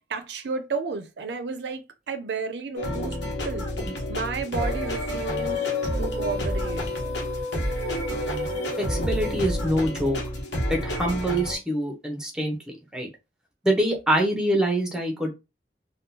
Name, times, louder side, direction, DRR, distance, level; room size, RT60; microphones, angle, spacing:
voice 1, 0.0-3.2 3.4-3.7 4.1-5.7 6.0-6.8, right 4 dB, 75° right, 0.5 m, -32 dB
sound 1, 2.8-11.6, left 1 dB, 85° left, 1.0 m, -29 dB
voice 2, 8.8-10.2 10.7-12.6 12.9-13.1 13.6-15.3, right 1 dB, 5° right, 0.7 m, -25 dB
3.6 x 2.3 x 2.7 m
head